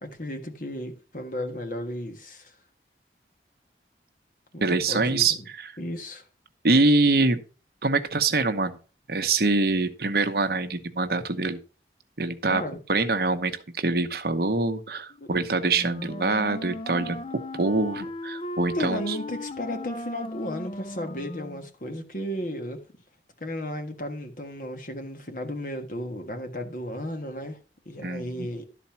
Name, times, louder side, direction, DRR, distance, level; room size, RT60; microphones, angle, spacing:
voice 1, 0.0-2.5 4.5-5.5 5.8-6.2 12.5-12.8 15.2-15.3 18.7-22.8 23.4-27.6 27.8-28.7, left 1 dB, 45° left, 1.5 m, -34 dB
voice 2, 4.6-5.8 6.6-7.4 7.8-8.8 9.1-11.6 12.2-12.6 12.9-19.2 28.0-28.5, right 3 dB, 55° right, 0.9 m, -24 dB
Wind instrument woodwind instrument, 15.6-21.7, left 1 dB, 30° left, 0.5 m, -37 dB
12.0 x 4.2 x 5.7 m
head